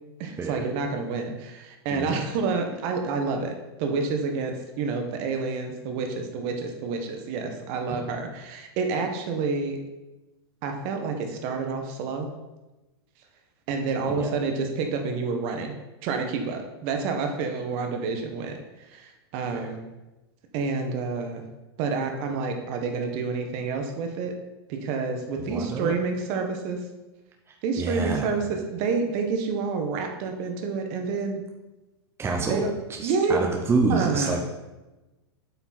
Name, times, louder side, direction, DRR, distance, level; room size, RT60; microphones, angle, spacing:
voice 1, 0.2-3.5 3.8-9.8 10.6-12.3 13.7-15.7 16.0-18.5 18.9-19.8 20.5-21.4 21.8-24.3 24.7-26.8 27.6-31.4 32.5-32.7 33.0-33.4 33.9-34.4, right 4 dB, 50° right, 4 dB, 1.4 m, -28 dB
voice 2, 1.9-2.2 7.9-8.1 14.2-14.3 19.5-19.7 25.4-25.9 27.8-28.3 32.2-32.6 33.0-34.4, right 3 dB, 15° right, 1 dB, 0.9 m, -27 dB
7.9 x 5.9 x 4.4 m, 1.1 s
hypercardioid pair, 110°, 14 cm